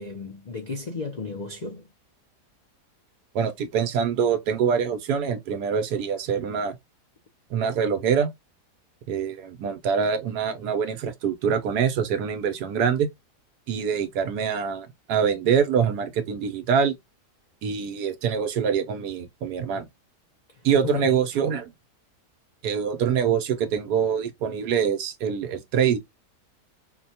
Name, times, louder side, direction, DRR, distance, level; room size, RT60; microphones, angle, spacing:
voice 1, 0.0-1.9 20.5-21.2, left 4 dB, 90° left, 0.3 m, -34 dB
voice 2, 3.3-6.8 7.5-8.3 9.1-13.1 13.7-16.9 17.6-19.9 20.6-21.7 22.6-26.0, right 7 dB, 80° right, 1.3 m, -24 dB
4.9 x 2.2 x 2.7 m
omnidirectional pair, 1.7 m